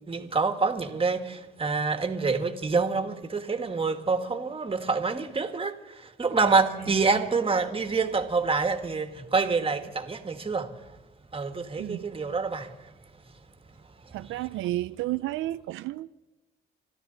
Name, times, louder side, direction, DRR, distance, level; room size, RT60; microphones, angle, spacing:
voice 1, 0.1-10.7 11.3-12.7, right 4 dB, 25° right, 1.8 m, -27 dB
voice 2, 14.1-16.1, right 16 dB, 85° right, 0.4 m, -31 dB
25.0 x 13.0 x 4.0 m
cardioid pair, 90°, 20 cm